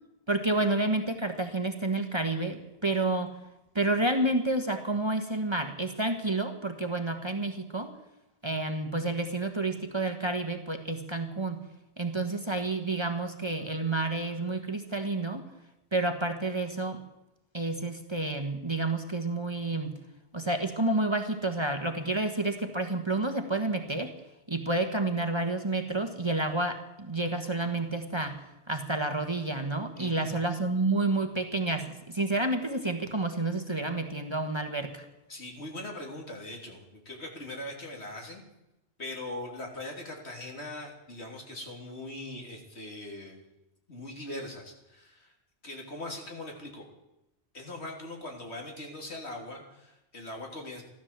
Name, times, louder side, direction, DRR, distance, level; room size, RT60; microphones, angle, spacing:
voice 1, 0.3-3.3 3.7-7.9 8.4-11.6 12.0-15.4 15.9-17.0 17.5-20.0 20.3-24.1 24.5-28.4 28.7-35.0, right 2 dB, 25° right, 5 dB, 1.4 m, -29 dB
voice 2, 30.0-30.3 35.3-38.4 39.0-43.4 43.9-45.3 45.6-46.9 47.5-50.8, left 1 dB, 70° left, 1 dB, 3.5 m, -41 dB
14.5 x 13.0 x 7.5 m, 0.91 s
omnidirectional pair, 1.1 m